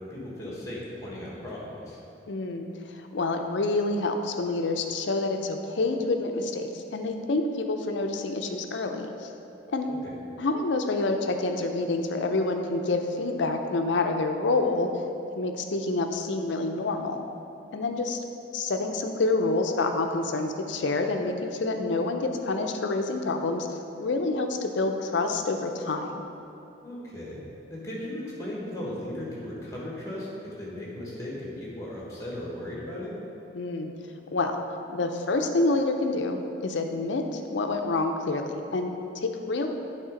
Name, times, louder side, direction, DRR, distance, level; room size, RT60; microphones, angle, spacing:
voice 1, 0.0-2.0 9.9-10.1 26.8-27.4 27.7-30.3 30.6-33.2, left 1 dB, 15° left, -5 dB, 1.4 m, -37 dB
voice 2, 2.3-2.7 3.1-9.3 9.7-9.9 10.4-14.9 15.3-17.3 17.7-18.2 18.5-23.7 24.0-26.2 33.5-33.9 34.3-34.6 34.9-39.7, left 2 dB, 70° left, 5 dB, 0.5 m, -27 dB
8.1 x 3.5 x 5.1 m, 2.7 s
head